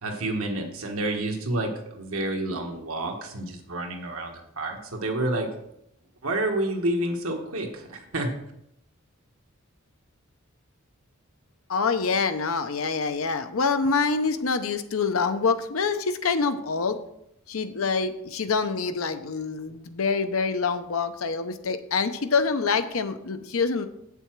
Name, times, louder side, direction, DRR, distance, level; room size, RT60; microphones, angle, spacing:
voice 1, 0.0-5.5 6.2-8.3, right 1 dB, 90° right, 2 dB, 1.5 m, -29 dB
voice 2, 11.7-17.0 17.5-23.9, left 4 dB, 80° left, 9 dB, 0.8 m, -26 dB
8.4 x 7.0 x 4.6 m, 0.78 s
head